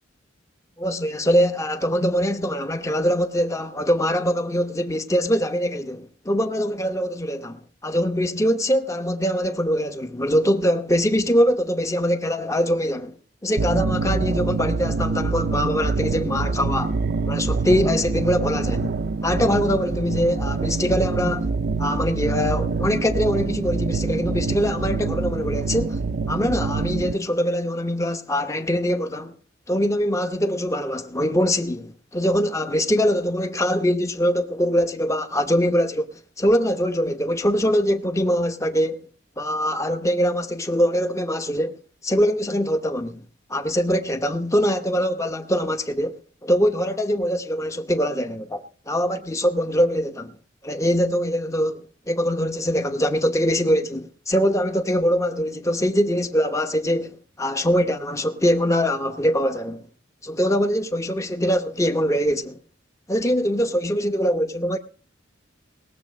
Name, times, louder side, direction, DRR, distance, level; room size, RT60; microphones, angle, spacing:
voice 1, 0.8-13.2 13.4-17.0 17.3-18.9 19.2-21.5 21.8-26.0 26.3-29.3 29.7-39.0 39.4-43.2 43.5-50.4 50.6-59.9 60.2-62.6 63.1-64.8, equal, 15° left, 0.9 m, -23 dB
sound 1, 13.6-27.1, right 4 dB, 55° right, 0.5 m, -25 dB
19.5 x 7.5 x 5.1 m
head